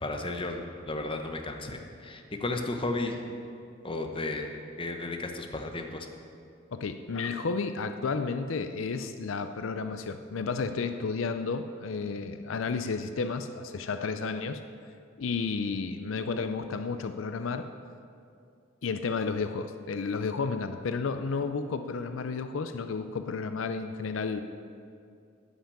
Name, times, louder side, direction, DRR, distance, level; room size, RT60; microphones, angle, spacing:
voice 1, 0.0-3.2 3.8-6.1, left 2 dB, 25° left, 4 dB, 0.9 m, -34 dB
voice 2, 6.7-14.6 15.2-17.7 18.8-24.4, left 4 dB, 75° left, 9 dB, 0.5 m, -32 dB
11.0 x 5.8 x 8.6 m, 2.4 s
head